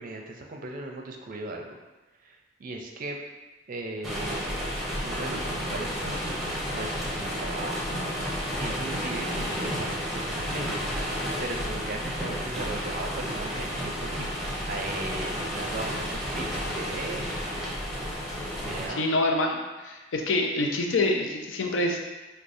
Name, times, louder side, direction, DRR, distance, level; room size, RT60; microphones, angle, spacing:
voice 1, 0.0-1.8 2.2-3.2 3.7-7.8 8.6-10.9 11.4-17.2 18.6-19.0, right 2 dB, 45° right, 2 dB, 0.4 m, -37 dB
sound 1, 4.0-18.9, equal, ahead, 0.7 m, -31 dB
voice 2, 18.9-22.0, left 2 dB, 90° left, 2 dB, 0.5 m, -26 dB
4.7 x 2.2 x 2.6 m, 1.2 s
head